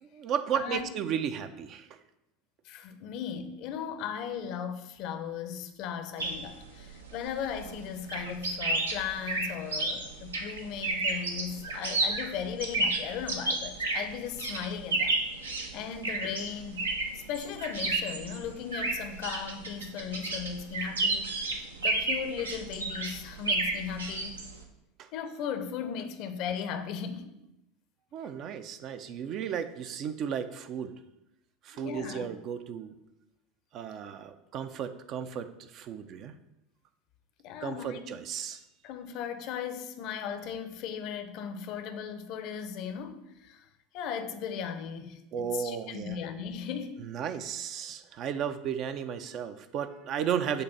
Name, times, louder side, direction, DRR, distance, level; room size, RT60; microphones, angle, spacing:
voice 1, 0.0-2.0 25.0-25.1 28.1-31.0 31.6-32.9 33.7-36.3 37.6-38.6 45.3-46.2 47.0-50.6, right 8 dB, 45° right, 0.4 m, -34 dB
voice 2, 0.5-0.9 2.6-15.2 15.7-16.9 17.1-24.4 25.1-27.3 31.7-32.3 37.4-38.1 38.8-43.7 43.9-47.0 48.5-48.6, left 8 dB, 50° left, 0.6 m, -37 dB
sound 1, 6.2-24.6, right 2 dB, 80° right, 0.7 m, -32 dB
6.7 x 2.5 x 5.5 m
figure-of-eight pair, 75°, 0 cm